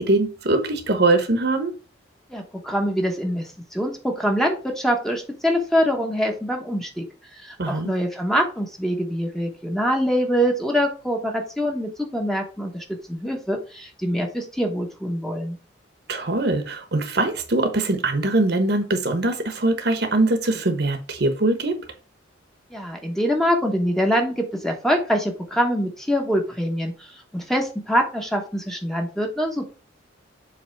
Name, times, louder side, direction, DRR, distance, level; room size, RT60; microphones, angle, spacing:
voice 1, 0.0-1.7 7.6-7.9 16.1-21.8, right 2 dB, 55° right, 1.1 m, -22 dB
voice 2, 2.3-7.1 7.3-15.6 22.7-29.7, equal, ahead, 1.1 m, -24 dB
7.7 x 3.4 x 4.6 m
head